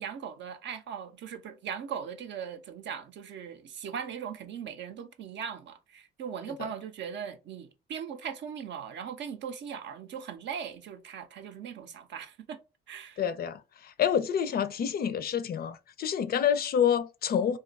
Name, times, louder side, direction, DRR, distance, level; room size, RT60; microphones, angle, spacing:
voice 1, 0.0-12.6 12.9-13.2, right 7 dB, 65° right, 0.6 m, -39 dB
voice 2, 13.2-17.6, left 8 dB, 50° left, 0.4 m, -28 dB
2.6 x 2.3 x 3.9 m
cardioid pair, 90°, 20 cm